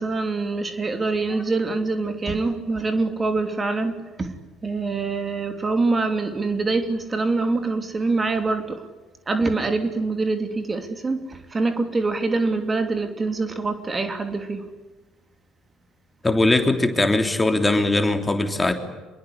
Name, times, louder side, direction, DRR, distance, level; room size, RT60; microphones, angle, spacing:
voice 1, 0.0-4.4 4.6-8.8 9.3-14.7, right 3 dB, 25° right, 8 dB, 3.0 m, -25 dB
voice 2, 16.2-18.7, left 2 dB, 15° left, 6 dB, 3.4 m, -20 dB
26.5 x 22.5 x 9.9 m, 1.2 s
figure-of-eight pair, 55°, 0 cm